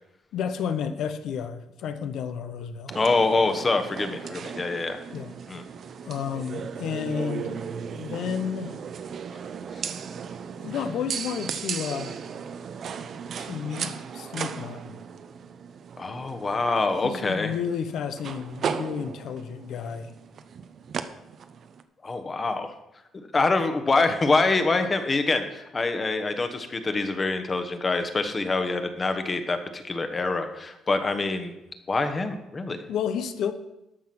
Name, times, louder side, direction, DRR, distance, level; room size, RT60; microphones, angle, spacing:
voice 1, 0.3-3.0 5.1-5.4 6.1-7.6 7.9-8.8 10.6-12.2 13.4-15.0 17.0-20.1 32.9-33.5, left 7 dB, 70° left, 10 dB, 0.8 m, -31 dB
voice 2, 2.9-5.0 5.5-5.6 16.0-17.5 22.0-22.7 23.1-31.5 31.9-32.8, left 3 dB, 25° left, 8 dB, 1.1 m, -25 dB
sound 1, 2.9-21.8, right 7 dB, 50° right, 0.7 m, -36 dB
12.5 x 5.9 x 5.9 m, 0.89 s
cardioid pair, 130°, 0 cm